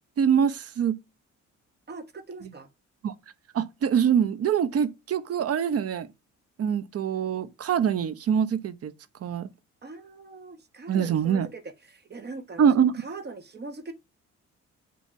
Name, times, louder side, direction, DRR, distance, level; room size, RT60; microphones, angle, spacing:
voice 1, 0.2-1.0 3.0-3.1 3.5-6.1 6.6-8.9 9.2-9.5 10.9-11.5 12.6-12.9, right 8 dB, 50° right, 0.8 m, -24 dB
voice 2, 1.9-2.7 9.8-13.9, right 3 dB, 35° right, 1.1 m, -41 dB
7.4 x 2.8 x 5.6 m
cardioid pair, 90°, 30 cm